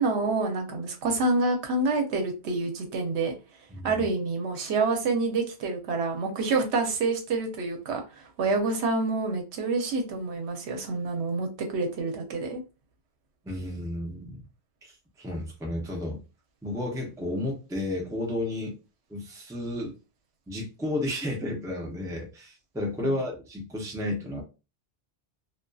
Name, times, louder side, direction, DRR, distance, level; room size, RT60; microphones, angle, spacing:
voice 1, 0.0-3.3 3.8-12.6 23.0-23.2, right 3 dB, 80° right, 0.9 m, -27 dB
voice 2, 3.7-4.1 13.4-14.4 14.8-16.2 16.6-18.7 19.1-19.9 20.5-24.4, left 1 dB, 5° right, 0.5 m, -32 dB
2.5 x 2.3 x 2.2 m
omnidirectional pair, 1.1 m